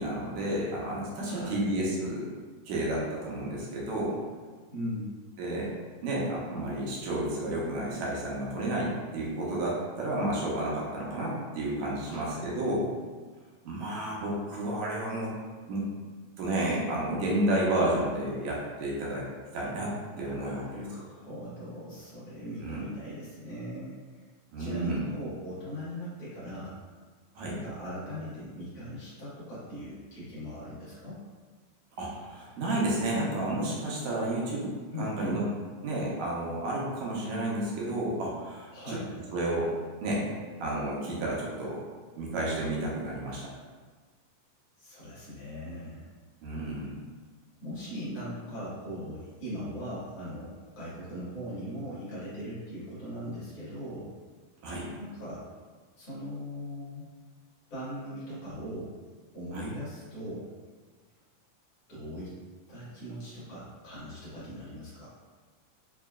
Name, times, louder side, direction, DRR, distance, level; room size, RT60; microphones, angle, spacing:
voice 1, 0.0-2.3 2.7-4.2 5.4-5.7 6.0-12.9 13.7-15.3 15.7-15.9 16.4-19.3 19.5-20.9 22.6-22.8 24.5-25.1 27.4-27.6 32.0-35.5 35.8-39.0 39.3-39.7 40.0-40.3 40.6-41.8 42.2-43.5 46.4-47.0 54.6-54.9 59.5-59.7, right 1 dB, 75° right, -5 dB, 2.0 m, -31 dB
voice 2, 1.2-1.6 4.7-5.1 12.1-12.5 20.1-24.2 24.6-26.8 27.5-31.2 34.9-35.4 38.7-39.1 44.8-46.0 47.6-54.1 55.0-55.5 56.0-57.1 57.7-58.9 59.3-60.5 61.9-62.3 62.7-65.1, equal, 55° left, -10 dB, 2.4 m, -39 dB
5.6 x 2.7 x 2.3 m, 1.5 s
omnidirectional pair, 3.7 m